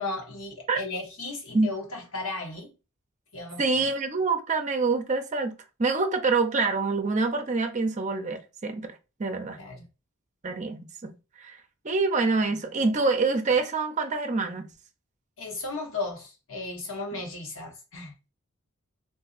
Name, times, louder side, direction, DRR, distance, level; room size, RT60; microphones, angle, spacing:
voice 1, 0.0-2.7 3.3-3.6 9.6-9.9 15.4-18.1, left 3 dB, 75° left, 1.1 m, -35 dB
voice 2, 3.6-8.9 9.2-9.6 10.4-11.1 11.4-11.6 11.8-14.7, right 3 dB, 35° right, 0.5 m, -26 dB
3.8 x 2.5 x 2.4 m
head